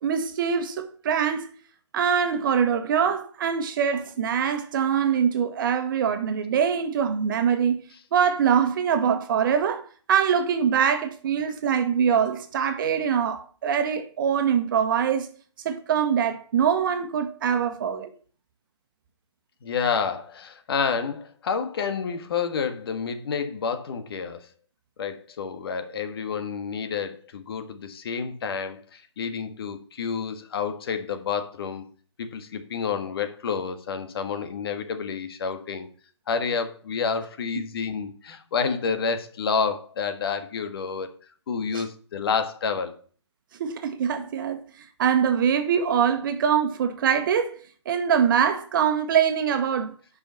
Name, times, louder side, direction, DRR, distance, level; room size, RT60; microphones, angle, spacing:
voice 1, 0.0-1.5 1.9-7.8 8.1-9.8 10.1-15.3 15.6-18.1 41.7-41.8 43.6-44.6 45.0-47.5 47.8-49.9, right 7 dB, 45° right, 1.3 m, -23 dB
voice 2, 19.6-24.5 25.0-31.9 32.2-35.9 36.3-41.1 41.5-43.0, left 6 dB, 55° left, 1.6 m, -29 dB
8.8 x 5.7 x 5.6 m
hypercardioid pair, 140°, 15 cm